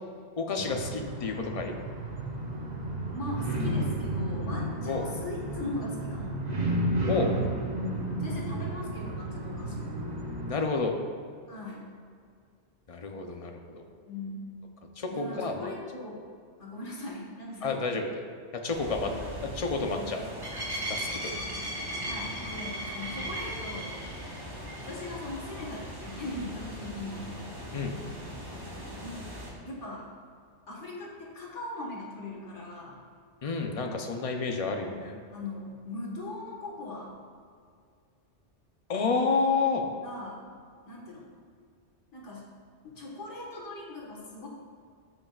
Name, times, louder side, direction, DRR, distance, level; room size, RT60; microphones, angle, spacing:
voice 1, 0.4-1.7 4.9-5.0 7.1-7.3 10.5-10.9 12.9-13.8 15.0-15.7 17.6-18.1 18.6-19.1 19.4-20.2 20.9-21.3 27.7-27.9 33.4-35.2 38.9-39.9, left 4 dB, 35° left, 3 dB, 0.7 m, -30 dB
sound 1, 0.6-10.5, right 1 dB, 40° right, 1.0 m, -32 dB
voice 2, 3.1-6.4 8.2-10.0 11.5-11.9 14.1-14.5 15.1-16.3 16.6-17.9 19.0-19.3 20.0-20.2 20.5-20.6 22.0-24.0 24.8-27.3 29.0-29.3 29.6-30.1 30.7-33.0 34.9-37.2 40.0-40.6 40.9-41.3 42.1-42.5 42.8-44.5, left 2 dB, 85° left, -3 dB, 1.9 m, -40 dB
sound 2, 18.7-29.5, equal, 20° right, 1.7 m, -38 dB
14.0 x 5.5 x 2.4 m, 2.1 s
omnidirectional pair, 1.2 m